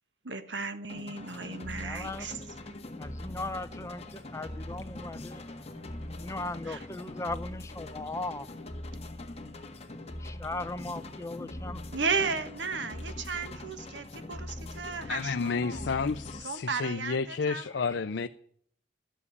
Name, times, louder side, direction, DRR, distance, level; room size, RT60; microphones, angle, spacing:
voice 1, 0.2-2.4 6.7-6.8 11.9-15.9 16.4-17.7, right 4 dB, 90° right, 1.4 m, -34 dB
sound 1, 0.9-16.4, left 1 dB, 35° left, 1.6 m, -42 dB
voice 2, 1.7-2.3 2.7-5.9 6.2-8.5 10.4-11.8 17.7-17.9, left 2 dB, 15° left, 0.7 m, -38 dB
voice 3, 15.1-18.3, left 5 dB, 80° left, 0.5 m, -31 dB
12.5 x 7.4 x 9.8 m
head